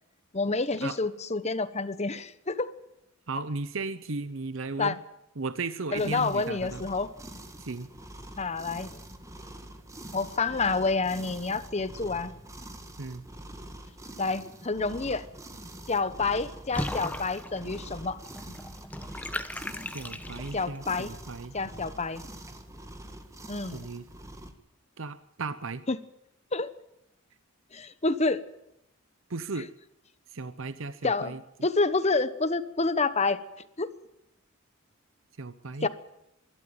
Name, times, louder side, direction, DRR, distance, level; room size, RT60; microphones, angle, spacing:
voice 1, 0.3-2.7 4.8-4.9 5.9-7.1 8.4-9.0 10.1-12.3 14.2-15.2 15.9-18.2 18.5-18.6 20.5-21.1 21.5-22.2 23.5-23.9 25.9-26.0 26.5-26.7 27.7-28.4 31.0-33.4 33.8-33.9 35.8-35.9, left 3 dB, 30° left, 13 dB, 1.1 m, -28 dB
voice 2, 3.3-5.0 5.4-6.8 7.6-7.9 13.0-13.2 19.9-21.5 23.7-24.0 25.0-25.8 29.3-29.7 30.3-31.4 35.4-35.9, right 3 dB, 65° right, 12 dB, 0.8 m, -35 dB
sound 1, 5.9-24.5, right 1 dB, 15° right, 1.7 m, -45 dB
Water / Bathtub (filling or washing), 16.7-20.8, left 1 dB, 10° left, 1.0 m, -37 dB
24.0 x 12.5 x 9.0 m, 0.85 s
head